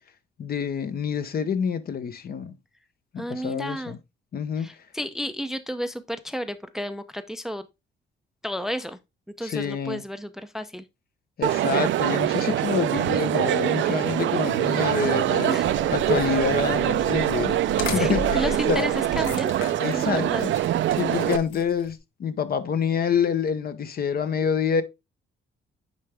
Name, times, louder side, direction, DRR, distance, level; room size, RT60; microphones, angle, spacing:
voice 1, 0.4-2.6 3.1-4.0 4.3-4.7 9.4-10.0 11.4-15.6 15.9-18.9 19.8-20.5 20.9-24.8, left 7 dB, 50° left, 0.9 m, -27 dB
voice 2, 3.2-3.9 4.6-7.6 8.4-9.0 9.4-10.9 15.5-15.7 17.8-19.5 19.9-20.4, equal, ahead, 0.5 m, -32 dB
Crowd, 11.4-21.4, right 12 dB, 70° right, 0.5 m, -24 dB
sound 1, 15.6-21.9, left 5 dB, 75° left, 1.3 m, -37 dB
9.4 x 3.4 x 3.4 m
cardioid pair, 90°, 20 cm